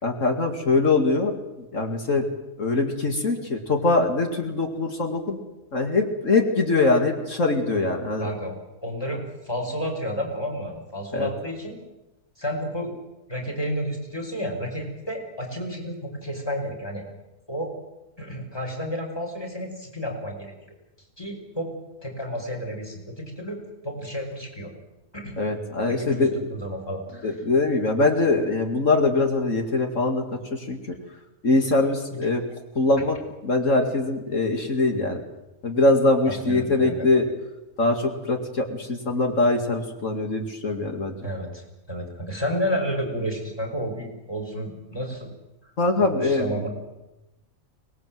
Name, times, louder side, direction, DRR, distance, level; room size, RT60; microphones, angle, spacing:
voice 1, 0.0-1.3 1.6-2.2 2.6-5.4 5.7-8.3 11.1-11.3 25.4-26.3 27.2-30.8 31.4-32.4 32.8-33.2 33.4-35.2 35.6-37.3 37.8-41.2 45.8-46.7, left 2 dB, 60° left, 4 dB, 2.6 m, -22 dB
voice 2, 8.2-8.5 8.8-11.8 12.4-12.9 13.3-17.0 17.5-17.7 18.2-20.5 21.2-21.7 22.0-24.7 25.1-25.4 25.8-27.4 32.1-32.2 36.3-37.1 41.2-45.3 46.0-46.7, equal, 15° left, 2 dB, 5.6 m, -31 dB
24.5 x 19.5 x 7.8 m, 0.97 s
omnidirectional pair, 1.5 m